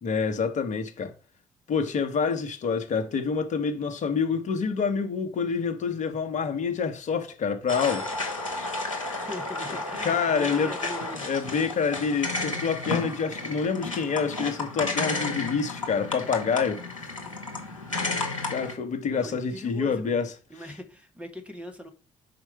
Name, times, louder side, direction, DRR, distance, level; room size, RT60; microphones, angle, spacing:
voice 1, 0.0-1.1 1.7-8.3 10.0-10.7 11.2-17.1 18.5-20.3, left 5 dB, 45° left, 1.2 m, -27 dB
sound 1, 7.7-18.8, left 2 dB, 85° left, 1.0 m, -32 dB
voice 2, 9.2-11.3 19.1-20.2 20.5-21.9, left 1 dB, 10° right, 1.6 m, -41 dB
5.0 x 4.5 x 5.8 m
figure-of-eight pair, 45°, 16 cm